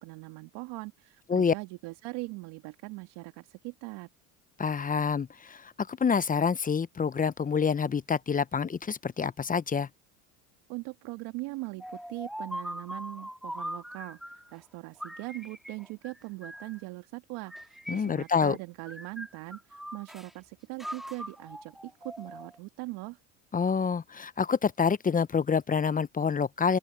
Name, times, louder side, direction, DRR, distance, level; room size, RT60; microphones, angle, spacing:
voice 1, 0.0-4.1 10.7-23.2, right 23 dB, 65° right, 2.2 m, -41 dB
voice 2, 4.6-9.9 17.9-18.6 23.5-26.8, left 6 dB, 20° left, 0.7 m, -27 dB
sound 1, 11.8-14.6 15.0-16.8 17.5-18.6 18.9-20.3 20.8-22.6, equal, ahead, 4.2 m, -41 dB
open air
hypercardioid pair, 80°, 43 cm